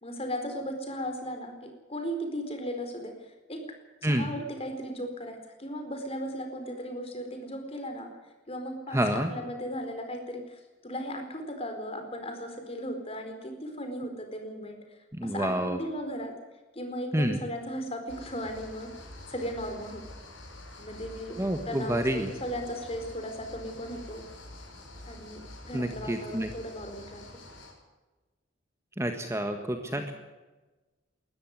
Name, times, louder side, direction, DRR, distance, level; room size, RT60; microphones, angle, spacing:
voice 1, 0.0-3.2 3.5-3.6 4.0-8.1 8.5-14.8 15.2-16.3 16.7-18.9 19.3-20.0 20.8-24.2 25.1-27.2 29.8-30.1, equal, 30° left, 5 dB, 4.5 m, -36 dB
voice 2, 8.9-9.3 15.2-15.8 17.1-17.4 21.4-22.3 25.7-26.5 29.0-30.1, right 1 dB, 15° right, 6 dB, 1.5 m, -28 dB
sound 1, 18.1-27.7, left 1 dB, 85° left, 6.4 m, -47 dB
21.0 x 13.5 x 9.7 m, 1.2 s
head